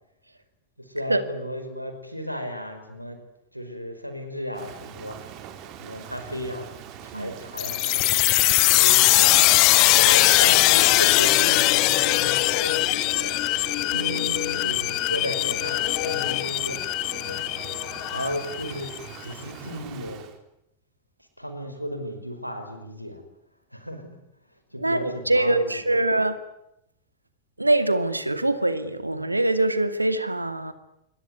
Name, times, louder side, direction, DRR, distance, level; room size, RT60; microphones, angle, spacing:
voice 1, 0.8-3.2 3.5-5.2 5.8-6.7 7.0-8.1 8.7-13.4 14.6-16.8 17.1-17.8 18.1-20.2 21.4-23.2 23.7-24.2 24.5-26.0, equal, 90° left, 7 dB, 5.3 m, -34 dB
Rain, 4.5-20.4, right 9 dB, 40° right, 4.1 m, -42 dB
sound 1, 7.6-19.0, left 20 dB, 40° left, 1.3 m, -21 dB
voice 2, 13.9-14.7 24.8-26.4 27.6-30.7, right 2 dB, 85° right, 11 dB, 2.3 m, -24 dB
27.0 x 22.5 x 9.6 m, 0.83 s
figure-of-eight pair, 90°, 0 cm